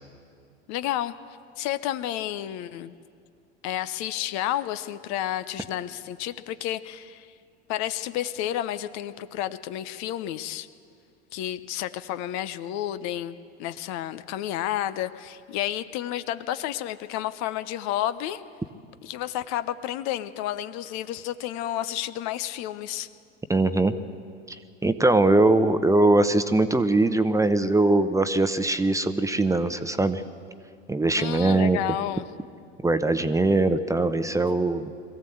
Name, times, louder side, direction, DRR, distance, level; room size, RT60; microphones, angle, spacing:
voice 1, 0.7-1.1 1.6-2.9 3.6-7.3 7.7-10.7 11.3-18.4 19.0-23.1 31.2-32.3, left 12 dB, 55° left, 13 dB, 0.9 m, -31 dB
voice 2, 23.5-23.9 24.5-30.2 30.9-31.8 32.8-34.9, right 2 dB, 10° right, 11 dB, 0.9 m, -21 dB
22.0 x 15.5 x 7.9 m, 2.3 s
hypercardioid pair, 80°, 33 cm